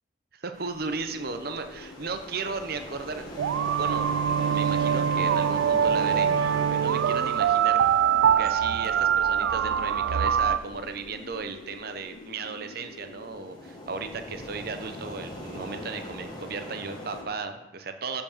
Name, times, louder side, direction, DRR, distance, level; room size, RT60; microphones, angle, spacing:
voice 1, 0.3-7.8 8.4-18.2, right 4 dB, 55° right, 7 dB, 0.7 m, -35 dB
sound 1, 0.5-17.2, left 1 dB, 20° left, 1.5 m, -42 dB
sound 2, 0.9-17.3, left 3 dB, 60° left, 0.6 m, -47 dB
sound 3, 3.4-10.6, right 8 dB, 90° right, 0.3 m, -23 dB
6.9 x 5.3 x 7.0 m, 0.94 s
head